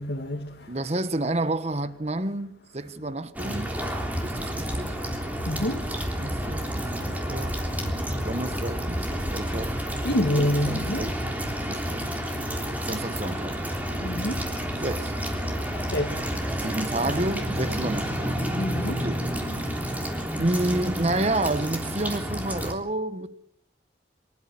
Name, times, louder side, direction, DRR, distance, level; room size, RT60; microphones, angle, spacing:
voice 1, 0.0-0.7 5.4-5.9 10.0-11.1 14.0-14.4 15.9-16.2 18.6-19.0, left 1 dB, 75° left, 2.3 m, -27 dB
voice 2, 0.7-3.7 4.2-5.0 6.2-7.6 8.2-9.8 10.6-11.2 11.7-12.1 12.8-13.6 14.8-15.1 16.6-18.4 18.9-19.3 20.3-23.3, right 2 dB, 35° right, 1.1 m, -30 dB
sound 1, 3.3-22.7, equal, 10° right, 3.4 m, -30 dB
26.0 x 13.0 x 8.6 m
head